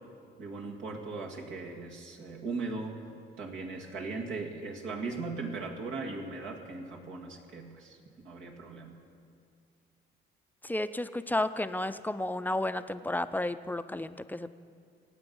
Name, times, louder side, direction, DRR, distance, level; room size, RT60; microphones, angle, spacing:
voice 1, 0.4-3.0 3.4-8.0 8.2-9.0, right 3 dB, 75° right, -1 dB, 2.1 m, -38 dB
voice 2, 10.6-14.5, left 1 dB, 10° left, 11 dB, 0.5 m, -32 dB
25.0 x 9.0 x 5.5 m, 2.3 s
cardioid pair, 90°, 20 cm